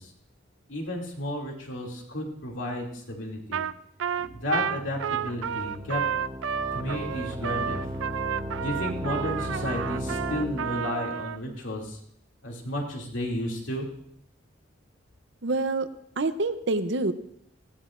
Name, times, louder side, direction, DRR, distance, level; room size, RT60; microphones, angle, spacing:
voice 1, 0.7-3.6 4.2-6.0 6.7-7.9 8.6-12.0 12.4-13.9, left 1 dB, 80° left, 0 dB, 2.6 m, -32 dB
Trumpet, 3.5-3.7 4.0-11.4, right 8 dB, 90° right, 0.4 m, -31 dB
sound 1, 4.1-10.9, equal, 15° right, 0.7 m, -36 dB
voice 2, 15.4-15.9 16.2-17.1, right 2 dB, 65° right, 11 dB, 0.7 m, -26 dB
18.5 x 15.5 x 2.5 m, 0.71 s
head